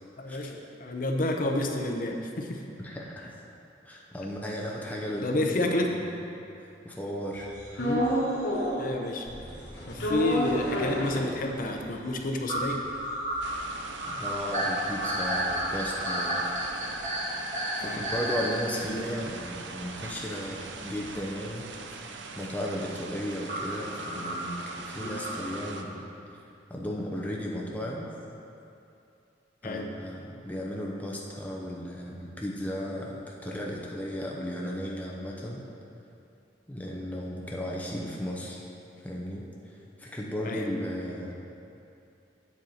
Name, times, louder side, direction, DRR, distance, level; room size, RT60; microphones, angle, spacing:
voice 1, 0.2-2.6 5.2-5.9 7.8-8.1 8.8-9.3 9.9-12.8 17.8-18.0 18.8-19.2 25.0-25.2 29.6-29.9 40.4-40.7, left 1 dB, 50° left, 2 dB, 0.7 m, -30 dB
voice 2, 2.8-3.3 3.8-6.2 6.6-7.5 10.0-10.2 14.1-16.5 17.8-22.0 22.3-26.0 26.7-28.1 29.6-35.6 36.7-38.6 39.0-41.3, equal, 10° left, -3 dB, 0.6 m, -35 dB
sound 1, 7.3-9.0 9.3-10.9 11.3-11.5 11.8-11.9 12.5-18.6 19.3-19.4 21.3-21.4 23.5-25.8, right 1 dB, 40° right, 1.8 m, -32 dB
sound 2, 7.7-8.9 9.3-11.8 12.2-12.3 12.5-17.0 17.3-21.4, equal, 85° left, 1.7 m, -33 dB
sound 3, 13.4-25.8, right 4 dB, 75° right, 0.6 m, -42 dB
8.5 x 6.4 x 4.3 m, 2.7 s
head